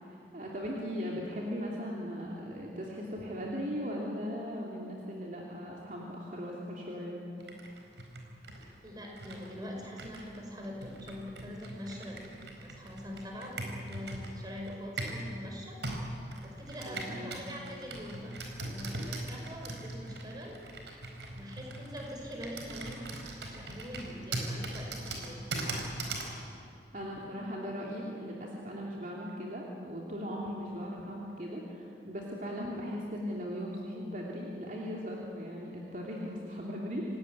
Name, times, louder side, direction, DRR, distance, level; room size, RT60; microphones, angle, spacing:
voice 1, 0.0-7.2 16.8-17.4 25.6-25.8 26.9-37.2, equal, 45° right, -3 dB, 3.0 m, -38 dB
Computer keyboard, 7.4-15.3 15.8-26.4, right 2 dB, 85° right, 4.3 m, -40 dB
voice 2, 8.8-15.8 16.4-18.3 18.6-20.6 21.3-23.0 23.5-25.4, equal, 25° right, 0 dB, 5.3 m, -43 dB
27.0 x 18.0 x 9.8 m, 2.6 s
head